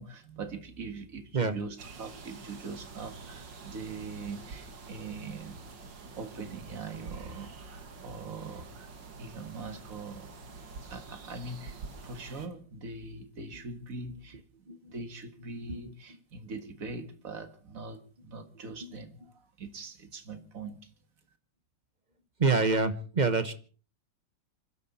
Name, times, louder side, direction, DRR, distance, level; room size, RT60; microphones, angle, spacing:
voice 1, 0.0-5.6 6.2-8.9 9.2-10.4 10.8-11.8 12.0-14.4 14.9-20.9, right 3 dB, 50° right, 2.1 m, -42 dB
sound 1, 1.8-12.5, right 4 dB, 80° right, 2.5 m, -47 dB
voice 2, 22.4-23.5, right 4 dB, 30° right, 0.9 m, -27 dB
27.0 x 12.0 x 4.2 m
omnidirectional pair, 2.0 m